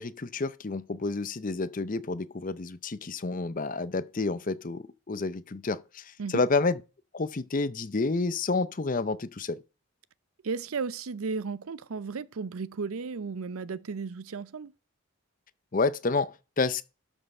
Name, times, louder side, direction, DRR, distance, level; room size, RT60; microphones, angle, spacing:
voice 1, 0.0-6.8 7.1-9.6 15.7-16.8, left 3 dB, 35° left, 0.6 m, -29 dB
voice 2, 10.4-14.7, right 4 dB, 70° right, 0.5 m, -34 dB
12.5 x 5.5 x 5.4 m
head